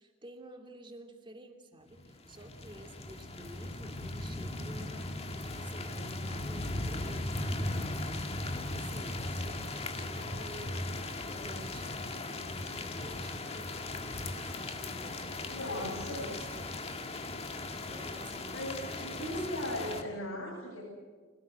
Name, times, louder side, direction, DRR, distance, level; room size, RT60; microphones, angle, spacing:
voice 1, 0.0-10.9 11.2-17.4 17.8-19.6 19.9-20.2, right 1 dB, 25° right, 3 dB, 2.8 m, -51 dB
sound 1, 2.0-20.0, left 2 dB, 30° left, 1.7 m, -38 dB
voice 2, 15.5-16.4 18.5-20.8, left 1 dB, 90° left, -4 dB, 7.7 m, -37 dB
25.5 x 18.5 x 8.0 m, 1.4 s
head